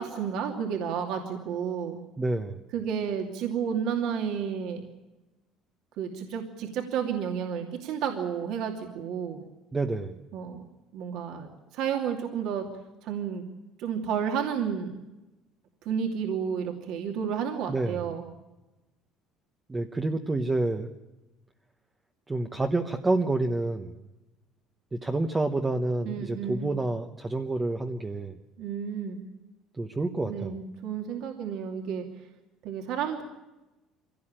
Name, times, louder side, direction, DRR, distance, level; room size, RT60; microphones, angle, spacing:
voice 1, 0.0-2.0 2.7-4.8 6.0-9.4 10.3-10.6 10.9-12.7 13.0-13.4 13.8-15.0 15.8-18.2 26.1-26.7 28.6-29.3 30.3-32.1 32.6-33.2, right 7 dB, 60° right, 2 dB, 2.7 m, -31 dB
voice 2, 2.2-2.6 9.7-10.2 17.7-18.0 19.7-20.9 22.3-24.0 24.9-28.4 29.8-30.5, right 2 dB, 10° right, 5 dB, 1.0 m, -28 dB
24.5 x 17.5 x 8.9 m, 1.1 s
cardioid pair, 160°, 0 cm